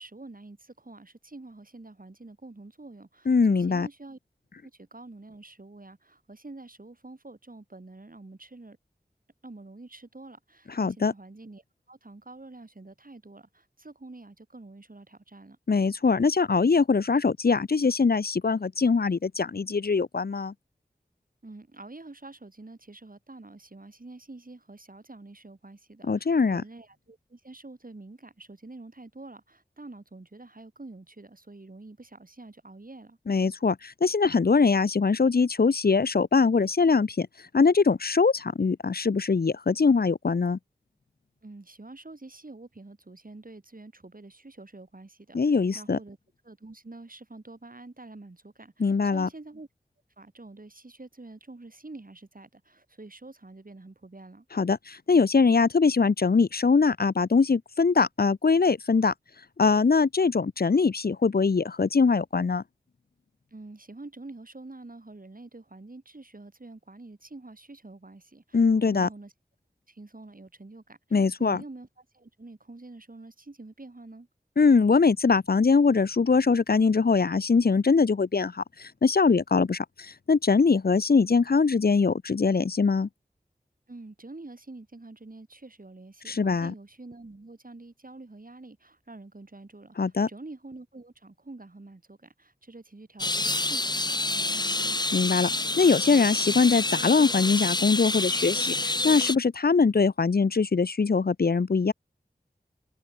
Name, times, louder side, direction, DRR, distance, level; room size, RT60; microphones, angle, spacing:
voice 1, 0.0-4.2 4.6-8.8 9.4-15.6 21.4-33.2 41.4-46.2 46.4-49.7 50.2-54.5 63.5-69.3 69.9-74.3 83.9-95.0, right 2 dB, 55° right, 6.1 m, -47 dB
voice 2, 3.3-3.9 10.8-11.1 15.7-20.5 26.1-26.6 33.3-37.3 37.5-40.6 45.3-46.0 48.8-49.3 54.5-59.1 59.6-62.6 68.5-69.1 71.1-71.6 74.6-83.1 86.3-86.7 90.0-90.3 95.1-95.5 95.8-101.9, left 4 dB, 65° left, 0.7 m, -22 dB
sound 1, 93.2-99.3, left 2 dB, 25° left, 0.6 m, -28 dB
wide cardioid pair, 45°, 17 cm